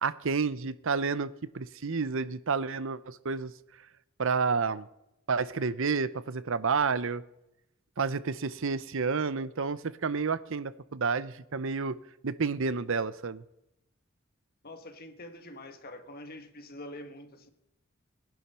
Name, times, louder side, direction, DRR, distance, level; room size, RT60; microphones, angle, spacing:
voice 1, 0.0-3.5 4.2-4.9 5.3-7.2 8.0-12.0 12.2-13.4, right 5 dB, 70° right, 0.8 m, -30 dB
voice 2, 14.6-17.5, left 1 dB, 45° left, 1.5 m, -45 dB
21.0 x 10.5 x 5.6 m
head